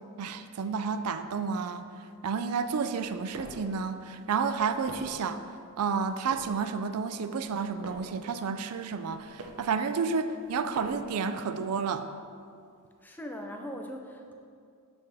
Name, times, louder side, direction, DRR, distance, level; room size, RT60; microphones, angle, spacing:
voice 1, 0.2-1.8 2.2-5.4 5.8-12.0, right 5 dB, 85° right, 10 dB, 0.4 m, -31 dB
sound 1, 2.9-3.7 4.4-5.3 5.9-6.6 7.3-8.2 8.9-9.7 10.4-11.2, right 1 dB, 70° right, 0.8 m, -46 dB
voice 2, 13.0-14.3, equal, 10° left, 3 dB, 0.5 m, -40 dB
12.0 x 4.2 x 3.5 m, 2.4 s
head